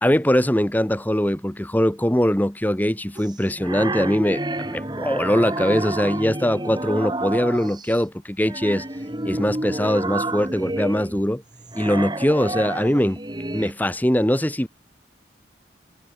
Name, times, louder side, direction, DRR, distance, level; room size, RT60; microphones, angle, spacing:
voice 1, 0.0-8.8 9.2-11.4 11.7-13.2 13.5-14.7, equal, 10° left, 1.4 m, -22 dB
sound 1, 3.2-7.9 8.4-13.7, right 2 dB, 25° right, 2.1 m, -30 dB
head